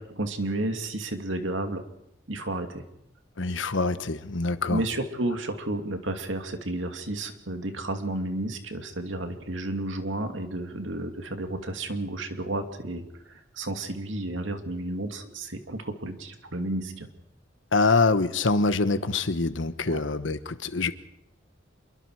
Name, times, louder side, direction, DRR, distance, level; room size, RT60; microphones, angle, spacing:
voice 1, 0.0-1.8 2.3-2.9 4.6-17.1 19.9-20.0, right 1 dB, 75° right, 6 dB, 2.4 m, -32 dB
voice 2, 3.4-4.8 17.7-20.9, left 3 dB, 70° left, 12 dB, 1.2 m, -25 dB
27.5 x 23.0 x 4.8 m, 0.79 s
head